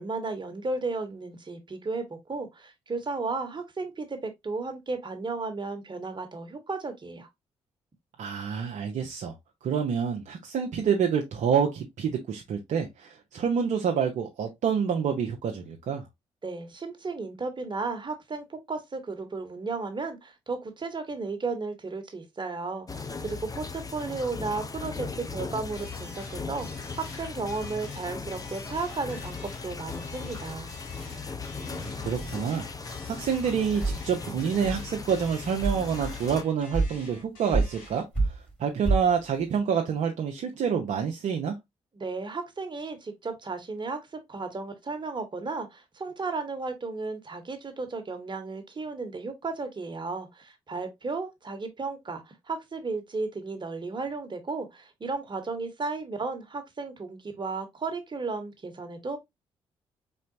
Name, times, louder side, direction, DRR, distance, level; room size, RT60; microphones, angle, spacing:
voice 1, 0.0-7.3 16.4-30.7 41.9-59.2, right 3 dB, 30° right, 1.3 m, -34 dB
voice 2, 8.2-9.3 9.6-16.0 31.6-32.7 33.2-38.3 38.6-41.6, right 7 dB, 55° right, 0.7 m, -27 dB
sound 1, 22.9-36.4, left 4 dB, 25° left, 0.7 m, -38 dB
sound 2, 25.7-38.1, left 3 dB, 75° left, 2.1 m, -49 dB
sound 3, 32.2-32.4 33.1-33.5 33.8-34.0 34.6-34.8 35.3-35.4 35.6-36.2 36.7-37.0 37.5-37.9 38.2-38.5 38.8-39.1, right 3 dB, 10° left, 1.9 m, -27 dB
4.3 x 3.9 x 2.6 m
figure-of-eight pair, 40°, 15 cm